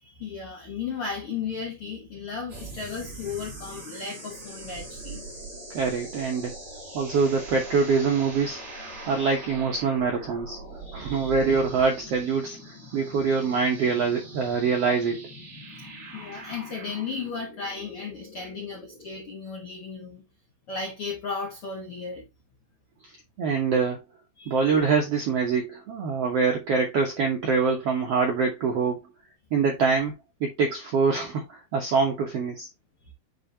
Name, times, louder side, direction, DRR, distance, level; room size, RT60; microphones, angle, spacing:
voice 1, 0.0-5.2 10.8-11.3 16.1-20.2 20.7-22.3 24.4-24.8, left 5 dB, 65° left, 1.3 m, -35 dB
sound 1, 2.5-19.3, right 2 dB, 35° right, 4.2 m, -42 dB
voice 2, 5.7-6.5 6.9-8.6 9.1-10.6 10.9-12.6 12.9-15.3 23.4-24.0 24.5-29.0 29.5-30.1 30.4-32.7, right 5 dB, 80° right, 1.3 m, -24 dB
8.9 x 3.9 x 2.7 m
omnidirectional pair, 4.4 m